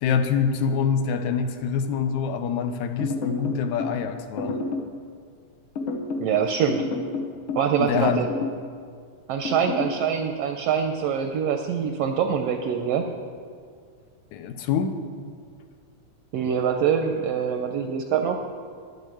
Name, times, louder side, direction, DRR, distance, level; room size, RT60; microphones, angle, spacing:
voice 1, 0.0-4.6 7.8-8.3 14.3-15.0, left 6 dB, 85° left, 8 dB, 2.1 m, -25 dB
sound 1, 3.0-4.0 4.4-4.9 5.8-6.3 6.7-7.7 8.1-8.6 9.4-10.0, left 3 dB, 65° left, 1.4 m, -29 dB
voice 2, 6.2-6.8 7.6-8.3 9.3-13.1 16.3-18.4, right 7 dB, 75° right, 5 dB, 1.5 m, -24 dB
10.5 x 8.3 x 7.7 m, 2.2 s
omnidirectional pair, 3.4 m